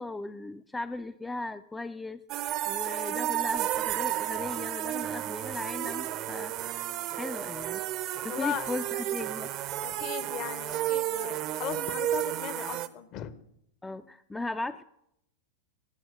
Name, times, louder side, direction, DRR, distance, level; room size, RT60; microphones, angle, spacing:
voice 1, 0.0-7.8 8.2-9.6 13.8-14.8, left 2 dB, 10° left, 10 dB, 0.4 m, -37 dB
sound 1, 2.3-12.9, right 13 dB, 40° right, 0.6 m, -32 dB
voice 2, 8.3-8.7 9.8-13.3, left 10 dB, 40° left, 16 dB, 0.8 m, -37 dB
18.0 x 6.2 x 6.4 m, 0.77 s
figure-of-eight pair, 90°, 0 cm